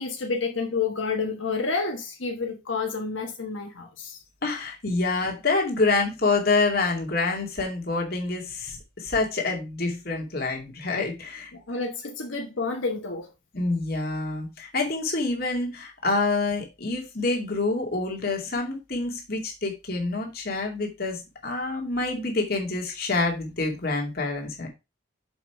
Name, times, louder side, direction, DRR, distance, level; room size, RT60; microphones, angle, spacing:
voice 1, 0.0-4.2 11.5-13.3, left 4 dB, 90° left, 1.3 m, -29 dB
voice 2, 4.4-11.5 13.5-24.7, left 3 dB, 50° left, 2.4 m, -27 dB
7.0 x 5.2 x 4.6 m
head